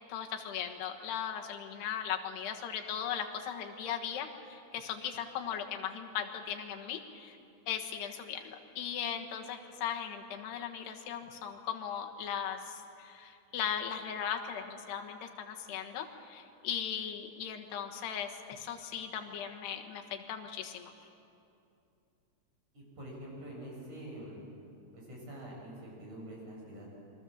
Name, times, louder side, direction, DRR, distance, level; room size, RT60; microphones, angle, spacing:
voice 1, 0.1-7.4 7.7-20.9, left 8 dB, 90° left, 3 dB, 3.5 m, -38 dB
voice 2, 22.7-24.4 24.9-27.0, right 1 dB, 45° right, -2 dB, 7.5 m, -46 dB
27.0 x 23.0 x 7.4 m, 2.6 s
omnidirectional pair, 4.6 m